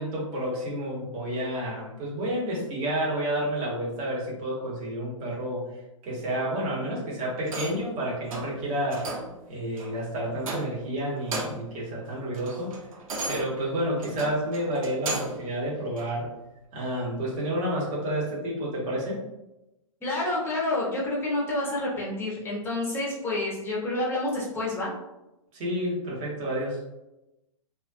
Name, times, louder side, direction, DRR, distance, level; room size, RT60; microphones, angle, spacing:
voice 1, 0.0-5.6 6.0-9.1 9.5-12.7 13.3-16.3 16.7-19.2 25.5-26.8, right 1 dB, 35° right, -5 dB, 1.0 m, -30 dB
sound 1, 7.4-7.9 8.3-8.6 8.9-9.4 9.8-9.9 10.4-10.9 11.2-11.7 12.1-15.5 16.0-16.1, right 2 dB, 75° right, 0.7 m, -35 dB
voice 2, 20.0-24.9, left 2 dB, 15° left, -5 dB, 0.7 m, -28 dB
2.3 x 2.3 x 2.6 m, 0.95 s
hypercardioid pair, 135°, 18 cm